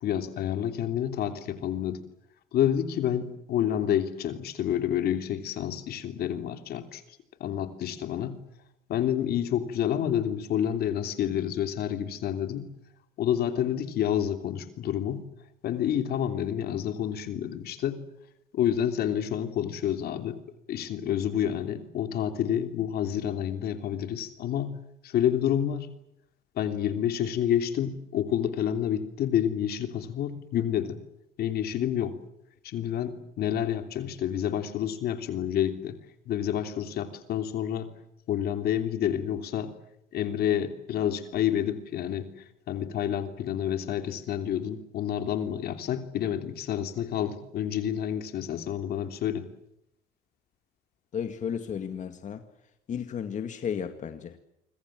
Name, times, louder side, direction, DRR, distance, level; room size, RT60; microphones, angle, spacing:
voice 1, 0.0-2.0 2.5-7.0 7.4-8.4 8.9-12.7 13.2-15.2 15.6-18.0 18.5-20.4 20.7-24.7 25.0-25.9 26.6-31.0 31.4-32.1 32.6-36.0 36.2-37.9 38.3-39.7 40.1-42.3 42.7-49.5, left 10 dB, 70° left, 7 dB, 3.2 m, -29 dB
voice 2, 51.1-52.4 52.9-54.4, left 7 dB, 45° left, 7 dB, 2.1 m, -33 dB
27.0 x 25.0 x 7.7 m, 0.81 s
cardioid pair, 110°, 17 cm